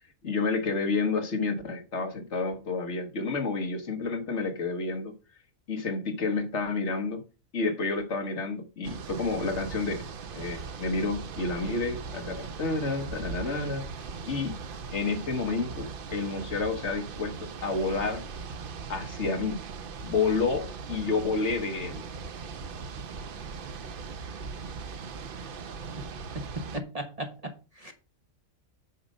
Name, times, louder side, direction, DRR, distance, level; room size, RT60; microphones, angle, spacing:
voice 1, 0.2-5.2 5.7-7.2 7.5-10.1 10.3-13.9 14.3-14.6 14.9-18.2 18.9-19.6 20.0-22.0, left 3 dB, 60° left, 1.4 m, -30 dB
sound 1, 8.8-26.8, right 5 dB, 55° right, 0.7 m, -39 dB
voice 2, 26.3-27.9, right 1 dB, 30° right, 1.0 m, -37 dB
8.7 x 5.1 x 5.3 m
omnidirectional pair, 1.4 m